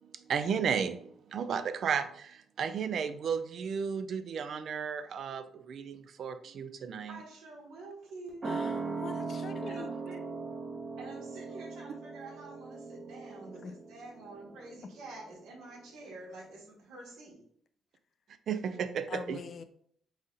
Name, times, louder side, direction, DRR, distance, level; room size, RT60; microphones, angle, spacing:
voice 1, 0.0-7.2 18.5-19.4, right 6 dB, 60° right, 10 dB, 0.4 m, -34 dB
voice 2, 7.1-8.6 9.7-10.3 11.0-17.4, right 2 dB, 80° right, -2 dB, 1.4 m, -48 dB
voice 3, 8.4-9.9 13.5-13.8 19.1-19.6, left 5 dB, 55° left, 9 dB, 0.4 m, -44 dB
sound 1, 8.4-15.5 15.8-15.9, right 4 dB, 35° right, 0.9 m, -39 dB
4.0 x 2.5 x 3.9 m, 0.63 s
cardioid pair, 90°, 0 cm